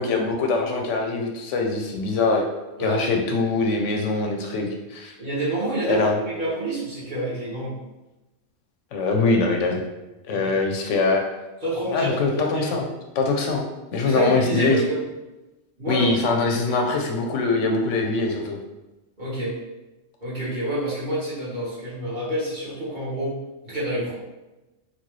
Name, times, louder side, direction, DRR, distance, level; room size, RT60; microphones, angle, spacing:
voice 1, 0.0-2.4 2.8-5.1 5.9-6.2 8.9-9.8 10.3-11.2 11.9-12.9 13.2-13.7 13.9-14.8 15.9-18.6, left 3 dB, 80° left, 2 dB, 0.9 m, -23 dB
voice 2, 5.2-7.8 10.3-10.5 11.6-12.8 14.0-15.0 15.8-16.1 16.5-16.6 19.2-19.6 20.2-23.4 23.6-24.1, right 1 dB, 40° right, -9 dB, 1.4 m, -28 dB
4.1 x 2.3 x 3.0 m, 1.0 s
omnidirectional pair, 1.3 m